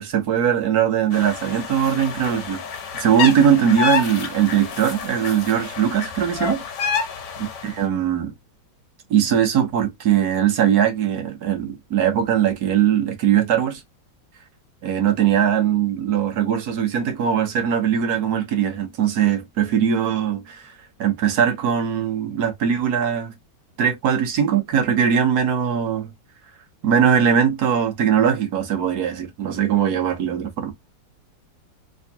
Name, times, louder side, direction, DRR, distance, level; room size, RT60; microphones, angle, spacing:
voice 1, 0.0-2.6 2.9-6.6 7.6-8.3 9.1-13.8 14.8-20.7 21.0-23.3 23.8-26.1 26.8-30.7, right 8 dB, 60° right, 1.1 m, -20 dB
sound 1, 1.1-7.7, left 7 dB, 60° left, 1.4 m, -28 dB
3.4 x 3.1 x 2.7 m
omnidirectional pair, 2.4 m